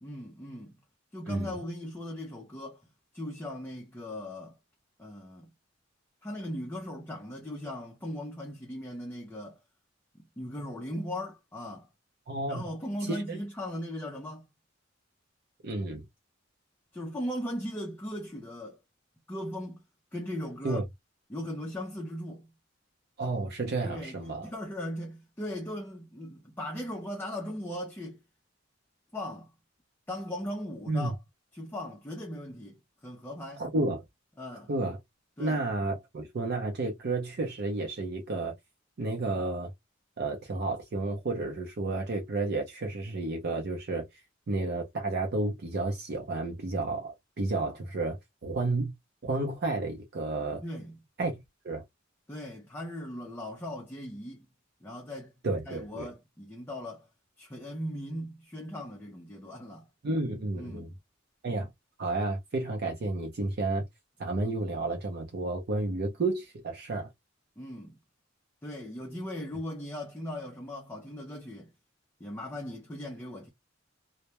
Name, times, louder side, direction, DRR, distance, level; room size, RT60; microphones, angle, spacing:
voice 1, 0.0-0.8 1.1-2.8 3.1-4.6 5.0-5.5 6.2-9.6 10.1-11.9 12.5-14.5 16.9-18.8 19.3-19.8 20.1-20.8 21.3-22.5 23.8-28.2 29.1-29.5 30.1-31.2 31.5-33.6 34.4-34.7 35.4-35.6 50.6-51.0 52.3-54.5 54.8-55.4 55.6-57.1 57.4-59.9 60.5-60.9 67.6-68.0 68.6-71.7 72.2-73.5, left 1 dB, 10° left, 0.4 m, -38 dB
voice 2, 1.3-1.6 12.3-12.7 13.0-13.4 15.6-16.0 20.6-20.8 23.2-24.5 30.9-31.1 33.6-34.0 34.7-35.0 35.4-38.5 39.0-39.7 40.2-44.0 44.5-48.2 48.4-48.9 49.2-50.6 51.2-51.8 55.4-56.1 60.0-60.9 61.4-61.7 62.0-63.8 64.2-67.1, right 2 dB, 55° right, 0.5 m, -31 dB
2.1 x 2.0 x 2.8 m
head